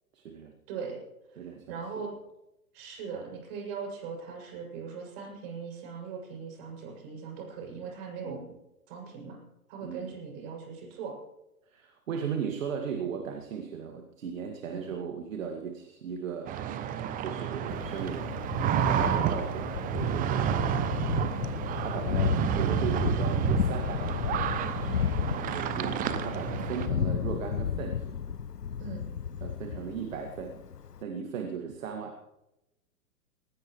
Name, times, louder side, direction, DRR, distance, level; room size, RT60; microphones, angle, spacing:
voice 1, 0.1-0.5 1.4-1.8 8.2-8.5 9.8-10.1 11.7-16.6 17.2-18.4 18.7-20.7 21.8-24.2 25.3-28.1 29.4-30.6 31.0-32.2, right 6 dB, 55° right, 4 dB, 2.2 m, -37 dB
voice 2, 0.7-1.0 1.3-2.1 2.7-8.4 8.9-9.4 9.7-11.1 14.7-14.9 18.9-19.2 21.3-21.5 24.8-25.1 26.5-26.7 28.8-29.1, right 6 dB, 40° right, 0 dB, 7.0 m, -40 dB
sound 1, 16.5-26.9, right 9 dB, 20° right, 0.9 m, -30 dB
Thunder, 17.7-31.0, left 7 dB, 85° left, 0.7 m, -33 dB
20.0 x 19.0 x 3.2 m, 0.90 s
figure-of-eight pair, 110°, 46 cm